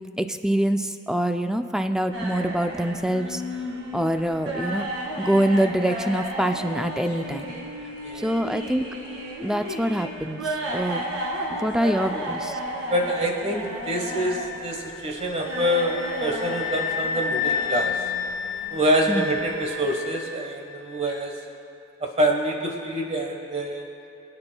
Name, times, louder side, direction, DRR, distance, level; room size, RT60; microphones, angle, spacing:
voice 1, 0.2-3.4 3.9-4.9 5.2-7.5 8.2-8.9 9.4-10.4 10.7-11.0 11.6-12.6 19.1-19.3, right 1 dB, 5° right, 7 dB, 0.3 m, -25 dB
sound 1, 2.1-19.8, equal, 80° right, 2.0 m, -34 dB
voice 2, 12.9-15.9 16.2-17.9 18.7-21.3 22.0-23.8, equal, 30° right, 2 dB, 1.2 m, -26 dB
sound 2, 14.0-20.8, left 6 dB, 75° left, 1.5 m, -31 dB
23.0 x 8.7 x 2.3 m, 2.7 s
head